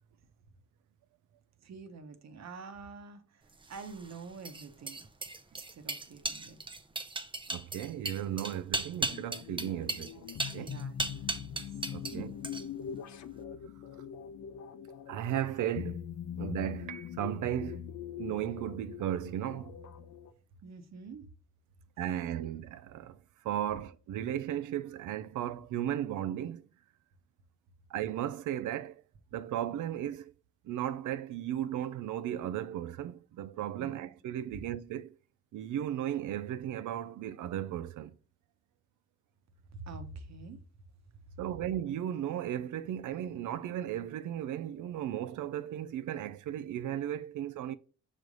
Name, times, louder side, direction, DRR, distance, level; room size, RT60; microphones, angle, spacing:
voice 1, 1.6-3.4 3.7-5.0 5.5-6.6 10.5-11.6 12.0-12.3 20.6-21.3 22.4-22.5 33.8-34.1 39.7-40.6 41.3-41.4, right 4 dB, 65° right, 1.1 m, -47 dB
sound 1, 3.6-12.2 12.4-12.9, right 3 dB, 15° right, 0.6 m, -37 dB
voice 2, 7.5-10.2 10.5-10.7 11.9-12.3 15.1-16.1 16.4-17.9 18.2-19.7 22.0-23.2 23.4-26.6 27.9-29.0 29.3-30.3 30.6-35.1 35.5-38.1 41.4-47.7, right 11 dB, 85° right, 0.5 m, -35 dB
sound 2, 9.0-20.3, left 8 dB, 75° left, 0.6 m, -42 dB
6.1 x 3.3 x 5.3 m
cardioid pair, 100°, 29 cm